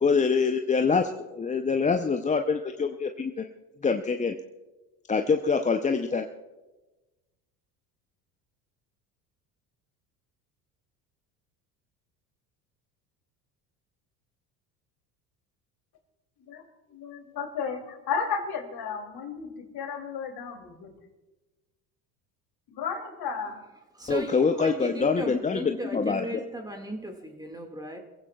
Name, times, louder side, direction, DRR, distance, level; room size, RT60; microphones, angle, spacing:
voice 1, 0.0-3.5 3.8-4.4 5.1-6.3 24.1-26.4, left 5 dB, 15° left, 6 dB, 0.6 m, -25 dB
voice 2, 16.5-20.9 22.7-23.6 24.6-24.7, left 6 dB, 50° left, 4 dB, 2.9 m, -34 dB
voice 3, 24.0-28.0, right 1 dB, 10° right, 4 dB, 2.0 m, -36 dB
29.5 x 15.5 x 2.3 m, 1.2 s
hypercardioid pair, 65°, 50 cm